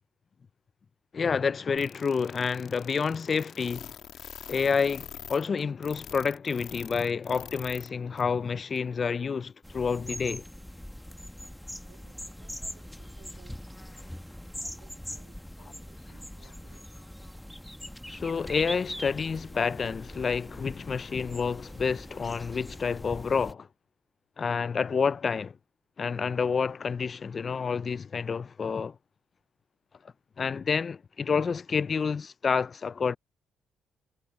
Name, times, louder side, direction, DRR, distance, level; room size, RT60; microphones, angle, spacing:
voice 1, 1.1-3.9 4.5-10.4 18.1-23.7 24.4-25.6 26.0-29.0 30.4-33.2, left 5 dB, 40° left, 0.3 m, -29 dB
sound 1, 1.8-7.9 8.2-8.3 8.8-8.9, left 9 dB, 70° left, 1.3 m, -44 dB
sound 2, 9.6-23.5, equal, 5° left, 1.2 m, -42 dB
voice 2, 11.9-13.7 14.5-16.9, right 12 dB, 85° right, 2.3 m, -60 dB
cardioid pair, 90°, 0 cm